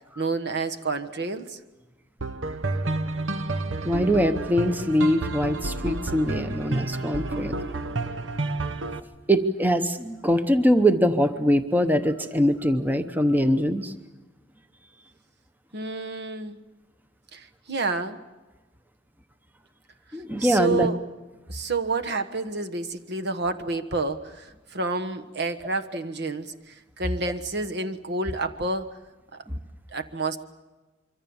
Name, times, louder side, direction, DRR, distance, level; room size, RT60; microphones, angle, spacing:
voice 1, 0.2-1.6 15.7-16.6 17.3-18.2 20.4-21.0 21.5-28.9 29.9-30.4, right 3 dB, 60° right, 7 dB, 1.3 m, -29 dB
sound 1, 2.2-9.0, right 2 dB, 85° right, 1.1 m, -30 dB
voice 2, 3.8-7.6 9.3-13.9 20.1-20.9, equal, 10° right, 8 dB, 0.9 m, -22 dB
25.0 x 24.5 x 7.1 m, 1.1 s
head